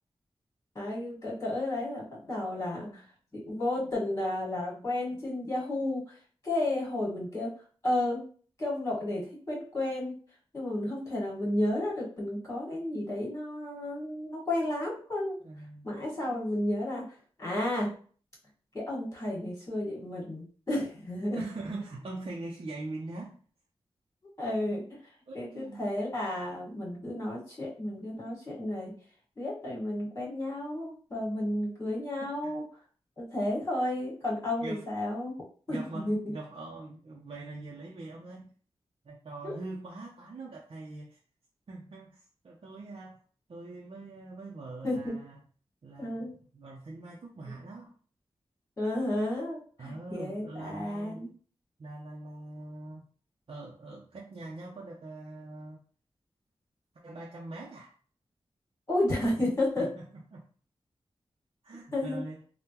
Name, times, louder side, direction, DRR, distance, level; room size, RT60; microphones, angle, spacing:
voice 1, 0.7-3.0 3.3-6.1 6.4-7.5 7.8-8.2 8.6-10.1 10.5-15.4 15.8-17.1 17.4-17.9 18.7-21.4 24.4-24.8 25.3-28.9 29.4-32.6 33.2-35.3 35.7-36.2 39.4-39.5 44.8-45.2 46.0-46.3 48.8-51.3 58.9-59.8 61.9-62.2, left 1 dB, 30° left, -4 dB, 1.5 m, -32 dB
voice 2, 15.4-15.9 21.3-23.4 25.3-25.8 32.2-32.5 34.6-34.9 35.7-38.5 39.0-41.2 41.7-43.2 43.5-45.4 45.8-47.9 49.8-51.3 51.8-53.0 53.5-55.8 57.0-57.9 59.8-60.1 60.3-60.5 61.6-62.4, right 2 dB, 55° right, -3 dB, 0.6 m, -42 dB
3.5 x 2.1 x 2.9 m, 0.43 s
wide cardioid pair, 80°, 11 cm